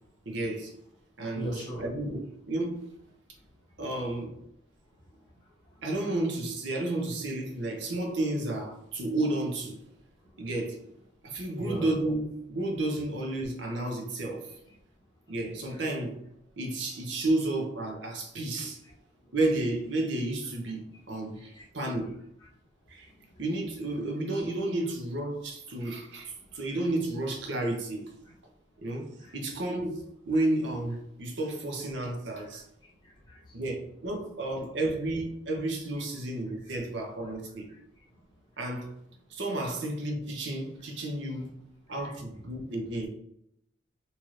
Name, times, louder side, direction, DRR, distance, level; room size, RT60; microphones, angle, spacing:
voice 1, 0.3-0.7 1.2-2.9 3.8-4.4 5.8-9.8 10.4-10.8 11.2-14.5 15.3-16.2 16.6-18.8 19.3-22.2 22.9-23.1 23.4-28.0 28.8-32.6 33.5-37.7 38.6-38.9 39.3-41.5 41.9-43.1, right 2 dB, 60° right, 0.7 m, -32 dB
voice 2, 1.3-1.8 5.0-5.8 11.6-11.9 21.4-21.6 26.5-26.6 29.2-29.4 32.4-32.5 32.8-33.6 39.5-39.7 42.0-42.2, equal, 20° left, 0.8 m, -41 dB
2.8 x 2.4 x 3.1 m
head